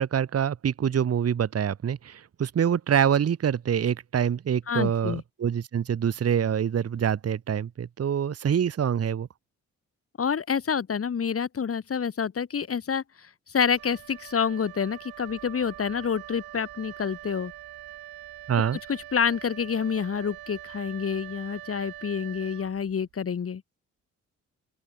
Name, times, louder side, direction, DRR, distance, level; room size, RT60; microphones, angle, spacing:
voice 1, 0.0-9.3 18.5-18.8, right 8 dB, 40° right, 1.0 m, -25 dB
voice 2, 4.7-5.2 10.2-13.0 13.5-17.5 18.9-23.6, left 7 dB, 40° left, 1.2 m, -28 dB
Wind instrument woodwind instrument, 13.7-23.2, right 14 dB, 75° right, 6.3 m, -44 dB
open air
hypercardioid pair, 45°, 37 cm